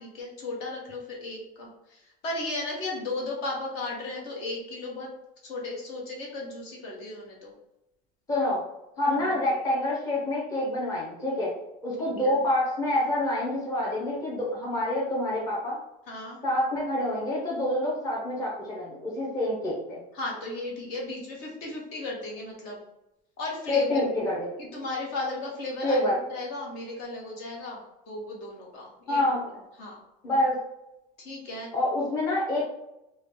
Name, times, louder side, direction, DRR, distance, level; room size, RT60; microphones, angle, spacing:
voice 1, 0.0-5.1 5.4-7.5 9.1-9.2 12.0-12.4 16.1-16.4 20.1-22.8 23.4-24.2 24.6-27.8 28.1-29.2 29.8-30.0 31.2-31.7, left 2 dB, 55° left, -2 dB, 1.3 m, -35 dB
voice 2, 8.3-8.6 9.0-11.5 11.8-15.8 16.4-20.0 23.7-24.5 25.8-26.2 29.1-29.4 30.2-30.6 31.7-32.6, left 1 dB, 15° left, -6 dB, 0.9 m, -27 dB
3.8 x 2.4 x 3.5 m, 0.88 s
cardioid pair, 160°, 20 cm